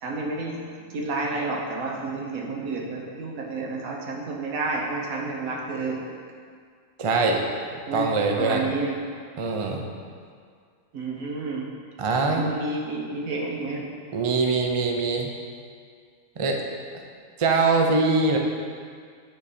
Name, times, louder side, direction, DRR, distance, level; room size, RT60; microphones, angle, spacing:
voice 1, 0.0-0.6 0.9-6.0 7.9-8.1 8.4-9.0 10.9-11.7 12.3-13.9, right 3 dB, 80° right, -1 dB, 1.4 m, -30 dB
voice 2, 7.0-7.4 7.9-8.7 9.4-9.9 12.0-12.5 14.1-15.3 16.4-16.6 17.4-18.4, right 3 dB, 45° right, 2 dB, 0.4 m, -23 dB
9.9 x 4.0 x 4.2 m, 2.1 s
omnidirectional pair, 1.4 m